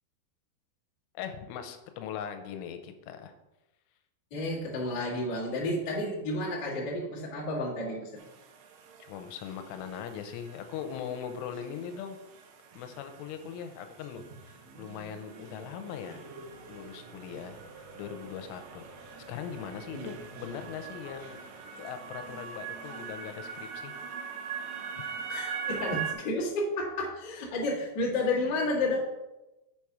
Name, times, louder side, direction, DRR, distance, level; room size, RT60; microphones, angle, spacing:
voice 1, 1.1-3.3 9.0-12.2 12.8-16.3 16.7-17.6 18.0-21.4 21.8-23.9, left 8 dB, 85° left, 7 dB, 3.2 m, -40 dB
voice 2, 4.3-8.1 19.9-20.1 25.3-29.0, left 2 dB, 55° left, -6 dB, 1.2 m, -31 dB
sound 1, 8.2-26.1, right 6 dB, 80° right, 2.7 m, -43 dB
sound 2, 14.5-23.3, right 3 dB, 60° right, 2.3 m, -50 dB
6.9 x 5.8 x 4.8 m, 1.0 s
omnidirectional pair, 5.5 m